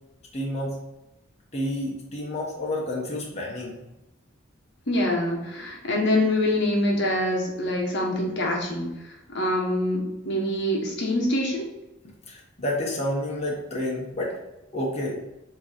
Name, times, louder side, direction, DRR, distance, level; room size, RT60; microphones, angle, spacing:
voice 1, 0.3-0.8 1.5-3.8 12.3-14.3 14.7-15.1, left 1 dB, 30° left, -3 dB, 1.2 m, -29 dB
voice 2, 4.9-11.7, left 1 dB, 60° left, -1 dB, 1.3 m, -25 dB
7.9 x 3.2 x 4.3 m, 0.94 s
head